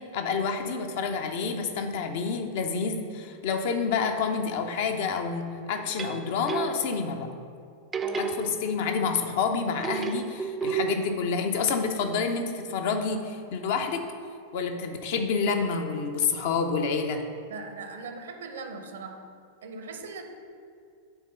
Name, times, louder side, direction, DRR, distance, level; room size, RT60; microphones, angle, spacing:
voice 1, 0.0-7.3 8.2-14.0 14.5-17.2, left 5 dB, 50° left, 5 dB, 0.6 m, -28 dB
sound 1, 5.7-7.2 7.9-9.1 9.8-11.2, right 5 dB, 20° right, 0.4 m, -32 dB
voice 2, 17.5-19.2 19.6-20.2, right 4 dB, 65° right, 6 dB, 0.7 m, -39 dB
8.2 x 3.6 x 5.4 m, 2.3 s
figure-of-eight pair, 90°, 0 cm